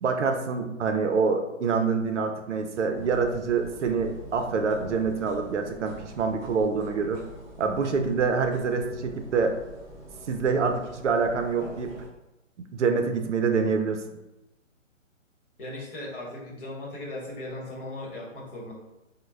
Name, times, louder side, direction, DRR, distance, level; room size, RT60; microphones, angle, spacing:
voice 1, 0.0-7.2 7.6-9.6 10.3-11.9 12.7-14.0, right 5 dB, 65° right, 5 dB, 0.6 m, -26 dB
sound 1, 2.9-12.1, right 1 dB, 15° right, 0.6 m, -45 dB
voice 2, 15.6-18.7, left 1 dB, 40° left, -3 dB, 1.1 m, -37 dB
3.1 x 2.2 x 3.3 m, 0.97 s
hypercardioid pair, 160°, 39 cm